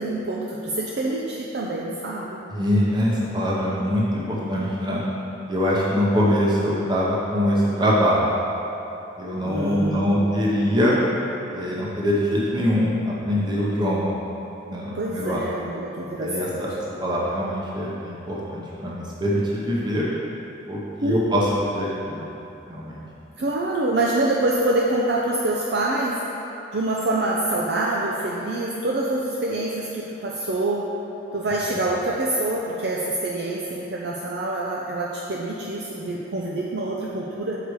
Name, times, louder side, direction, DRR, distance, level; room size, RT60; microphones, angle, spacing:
voice 1, 0.0-2.4 9.4-10.3 14.9-16.6 21.0-21.2 23.4-26.2 26.7-30.8 31.3-37.6, right 2 dB, 55° right, -4 dB, 0.5 m, -26 dB
voice 2, 2.5-5.0 5.5-8.3 9.2-11.0 11.5-14.1 14.7-15.4 16.2-20.0 20.7-22.3 22.7-23.0, equal, 25° right, -5 dB, 0.8 m, -23 dB
6.6 x 4.9 x 4.7 m, 2.9 s
head